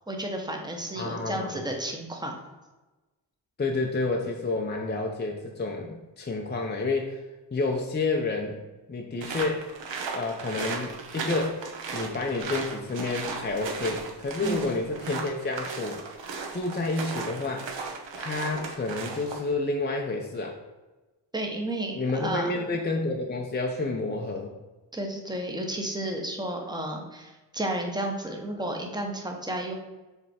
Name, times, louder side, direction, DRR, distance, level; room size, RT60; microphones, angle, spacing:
voice 1, 0.1-2.4 14.4-14.8 21.3-22.5 24.9-29.7, right 1 dB, 10° right, 2 dB, 0.8 m, -32 dB
voice 2, 1.0-1.6 3.6-7.2 7.5-8.6 8.9-9.7 10.1-11.6 11.9-16.0 16.5-17.7 18.2-20.6 21.9-24.5, left 3 dB, 25° left, 1 dB, 0.5 m, -29 dB
sound 1, 9.2-19.5, right 5 dB, 85° right, 1.1 m, -36 dB
7.4 x 3.4 x 4.2 m, 1.1 s
wide cardioid pair, 170°, 44 cm